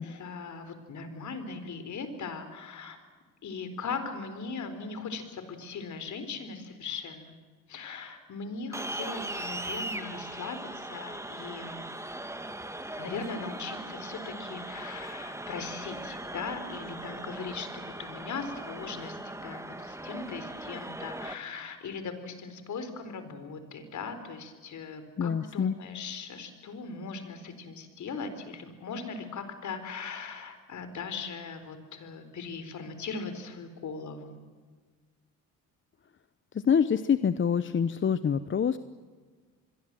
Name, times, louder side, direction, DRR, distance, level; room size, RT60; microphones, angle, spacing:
voice 1, 0.0-3.0 3.4-7.4 7.7-11.9 13.0-34.4, left 4 dB, 55° left, 9 dB, 4.3 m, -39 dB
sound 1, 8.7-21.3, right 1 dB, 10° right, 1.9 m, -39 dB
voice 2, 25.2-25.8 36.5-38.8, left 7 dB, 35° left, 13 dB, 0.9 m, -26 dB
27.0 x 22.0 x 7.7 m, 1.4 s
cardioid pair, 85°, 34 cm